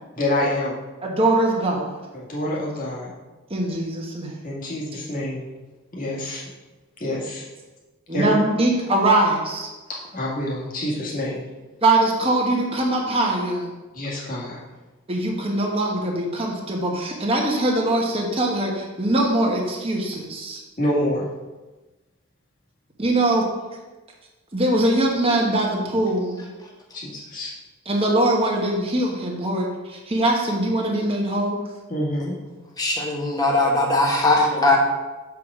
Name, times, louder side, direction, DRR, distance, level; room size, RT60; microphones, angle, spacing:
voice 1, 0.1-0.8 2.1-3.1 4.4-5.4 5.9-6.4 7.0-7.5 8.1-8.3 9.9-11.5 13.9-14.6 20.8-21.3 26.9-27.5 31.9-32.3 34.5-34.7, left 1 dB, 40° left, -5 dB, 1.9 m, -27 dB
voice 2, 1.0-2.0 3.5-4.3 8.1-9.7 11.8-13.7 15.1-20.6 23.0-23.5 24.5-26.5 27.9-29.7 30.1-31.6, right 1 dB, 25° right, 0 dB, 1.2 m, -22 dB
voice 3, 32.8-34.8, left 2 dB, 20° left, -1 dB, 1.2 m, -20 dB
7.1 x 4.8 x 4.8 m, 1.2 s
head